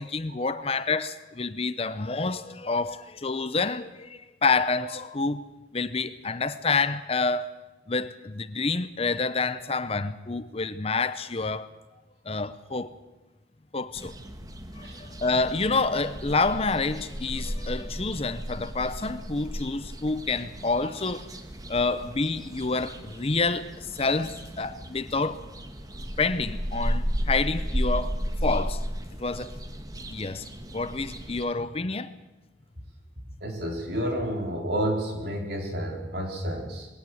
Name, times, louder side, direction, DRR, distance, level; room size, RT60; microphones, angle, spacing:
voice 1, 0.0-5.4 5.7-7.5 7.9-11.7 12.3-12.9 13.7-14.1 14.8-21.3 21.7-25.4 26.2-28.1 28.4-28.8 29.2-29.5 30.1-30.4 30.7-32.1, left 3 dB, 30° left, 0.7 m, -28 dB
sound 1, 14.0-31.5, equal, 20° right, 1.4 m, -34 dB
voice 2, 33.4-36.9, equal, 60° right, 4.1 m, -30 dB
21.0 x 17.5 x 7.9 m
head